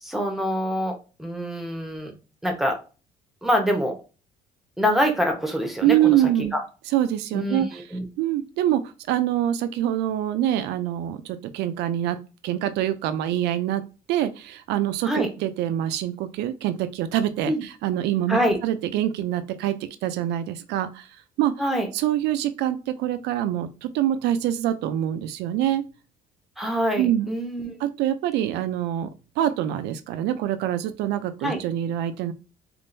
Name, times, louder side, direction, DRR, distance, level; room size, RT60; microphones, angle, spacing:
voice 1, 0.0-2.1 2.4-2.8 3.4-3.9 4.8-6.6 7.3-8.0 15.0-15.3 17.5-17.6 18.3-18.6 21.6-21.9 26.6-27.7 31.4-31.6, equal, ahead, 3 dB, 0.8 m, -25 dB
voice 2, 5.8-6.5 6.9-7.8 8.2-12.2 12.4-13.8 14.1-15.1 15.4-19.7 20.0-21.1 21.4-21.5 21.9-25.8 27.0-27.3 27.8-29.1 29.4-32.3, right 12 dB, 85° right, 11 dB, 0.4 m, -25 dB
3.6 x 2.5 x 2.6 m, 0.32 s
cardioid pair, 110°, 17 cm